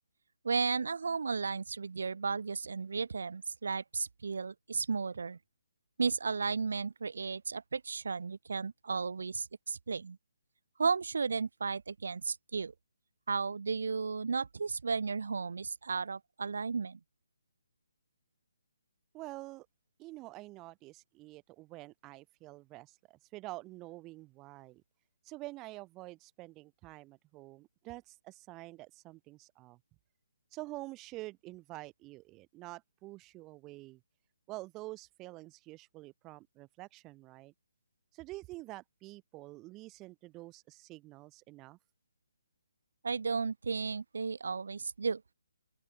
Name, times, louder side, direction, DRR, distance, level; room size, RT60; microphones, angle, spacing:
voice 1, 0.4-5.4 6.0-10.2 10.8-12.7 13.3-17.0 43.0-45.2, right 5 dB, 65° right, 5.2 m, -34 dB
voice 2, 19.1-19.7 20.0-24.8 25.2-29.8 30.5-34.0 34.5-37.5 38.1-41.8, right 20 dB, 20° right, 6.0 m, -47 dB
open air
figure-of-eight pair, 145°, 0 cm